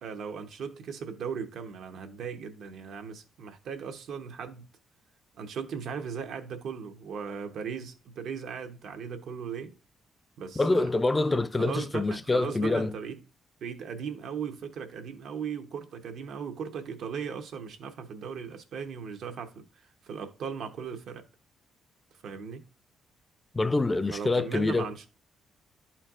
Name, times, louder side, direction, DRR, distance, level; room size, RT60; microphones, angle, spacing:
voice 1, 0.0-4.6 5.4-9.7 10.4-10.9 11.6-13.2 13.6-21.2 22.2-22.7 24.1-25.1, right 6 dB, 70° right, 1.0 m, -37 dB
voice 2, 10.6-12.9 23.5-24.9, left 2 dB, 20° left, 0.4 m, -26 dB
11.5 x 4.4 x 2.5 m
cardioid pair, 90°, 0 cm